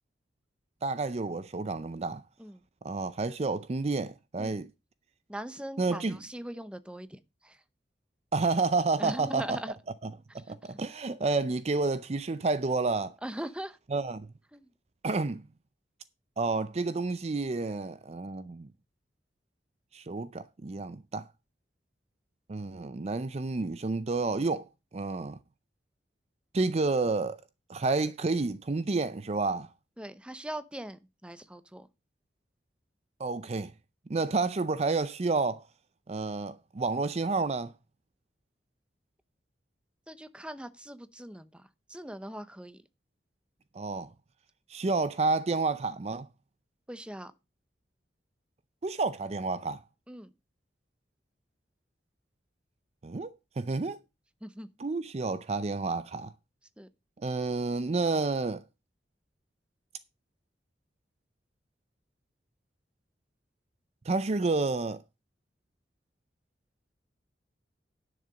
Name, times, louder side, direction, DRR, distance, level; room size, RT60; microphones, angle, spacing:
voice 1, 0.8-2.2 2.8-4.7 5.8-6.2 8.3-9.6 10.0-13.2 13.9-14.3 15.0-15.4 16.4-18.7 19.9-21.3 22.5-25.4 26.5-27.4 27.7-29.7 33.2-33.7 34.1-35.6 36.1-37.7 43.7-44.1 44.7-46.3 48.8-49.8 53.0-54.0 54.8-56.3 57.2-58.6 64.0-65.0, right 3 dB, 35° right, 0.5 m, -30 dB
voice 2, 5.3-7.6 9.0-9.8 10.5-10.8 11.1-11.2 13.2-13.8 14.5-14.7 30.0-31.9 40.1-42.8 46.9-47.3 50.1-50.3 54.4-54.7 56.8-56.9, right 1 dB, 5° right, 0.7 m, -41 dB
10.5 x 6.7 x 5.0 m
head